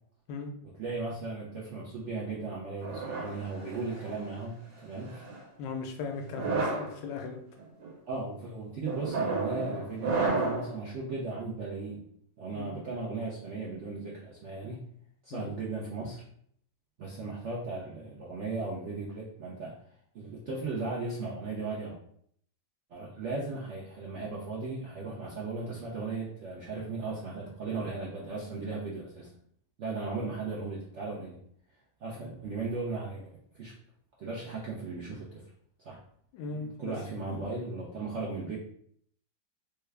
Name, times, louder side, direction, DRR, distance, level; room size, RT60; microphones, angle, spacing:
voice 1, 0.8-5.3 8.1-12.0 12.4-14.9 15.2-16.2 17.0-19.7 20.1-22.0 22.9-29.3 29.8-31.4 32.0-33.7 34.2-35.4 35.8-36.0 36.5-38.6, right 3 dB, 70° right, -5 dB, 0.7 m, -37 dB
sound 1, 2.8-4.2 5.0-5.4 6.2-6.9 7.6-7.9 8.9-10.7, right 3 dB, 85° right, 1.5 m, -32 dB
voice 2, 5.6-7.4 12.6-12.8 15.3-15.5 36.3-36.9 37.3-37.5, left 4 dB, 80° left, 3 dB, 1.3 m, -38 dB
3.4 x 2.2 x 3.3 m, 0.65 s
omnidirectional pair, 2.0 m